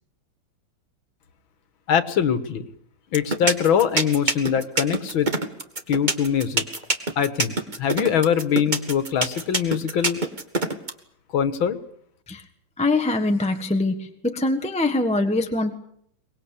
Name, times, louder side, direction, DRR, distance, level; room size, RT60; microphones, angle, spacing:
voice 1, 1.9-2.7 3.1-5.3 5.9-6.6 7.2-10.2 11.3-11.8, left 8 dB, 75° left, 13 dB, 2.2 m, -22 dB
sound 1, 3.1-10.9, right 2 dB, 25° right, 1.7 m, -23 dB
voice 2, 12.8-15.7, left 2 dB, 5° left, 4 dB, 1.2 m, -23 dB
23.5 x 21.0 x 8.5 m, 0.69 s
omnidirectional pair, 2.2 m